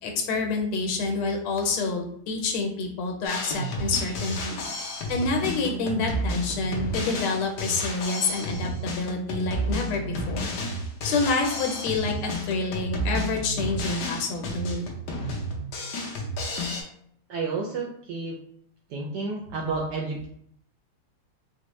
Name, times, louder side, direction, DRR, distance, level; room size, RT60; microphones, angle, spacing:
voice 1, 0.0-4.6 5.1-10.5 11.0-14.9, left 3 dB, 90° left, 2 dB, 1.6 m, -28 dB
Drum kit, 3.2-16.8, equal, 65° left, 1.1 m, -31 dB
voice 2, 17.3-18.4 18.9-20.3, right 3 dB, 75° right, -1 dB, 0.9 m, -31 dB
4.3 x 2.1 x 3.0 m, 0.67 s
omnidirectional pair, 2.3 m